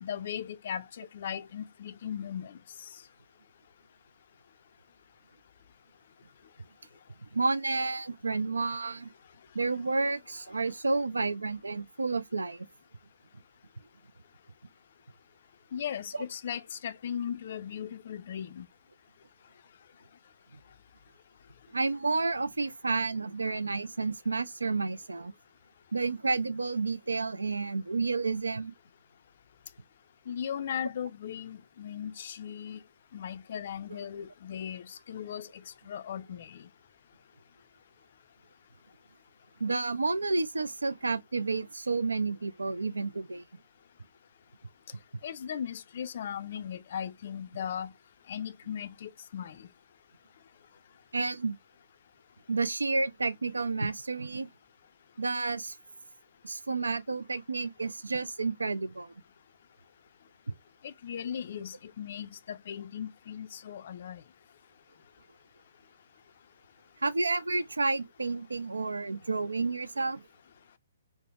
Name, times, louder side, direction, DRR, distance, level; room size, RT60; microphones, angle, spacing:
voice 1, 0.0-2.6 15.7-18.7 30.3-32.8 33.1-36.6 45.2-47.9 48.3-49.7 60.8-64.2, left 8 dB, 50° left, 0.3 m, -38 dB
voice 2, 7.2-9.1 9.5-12.7 21.7-25.3 25.9-28.7 39.6-43.4 51.1-51.6 52.5-54.5 55.2-55.8 56.4-59.1 67.0-70.2, right 3 dB, 80° right, 0.3 m, -30 dB
3.3 x 2.0 x 2.4 m
figure-of-eight pair, 130°, 0 cm